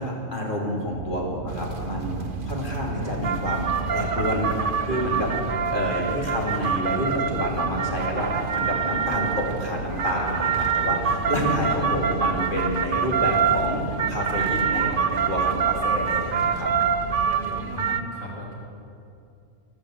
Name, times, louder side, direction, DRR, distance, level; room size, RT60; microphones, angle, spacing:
voice 1, 0.0-5.3 5.7-13.8 14.1-16.7, equal, 35° left, -2 dB, 2.9 m, -28 dB
sound 1, 0.8-17.4, right 3 dB, 70° right, 1.6 m, -35 dB
sound 2, 1.5-18.0, right 7 dB, 45° right, 0.8 m, -26 dB
voice 2, 11.1-11.7 17.4-18.6, left 1 dB, 80° left, -5 dB, 4.2 m, -38 dB
15.0 x 12.0 x 7.8 m, 2.5 s
omnidirectional pair, 1.5 m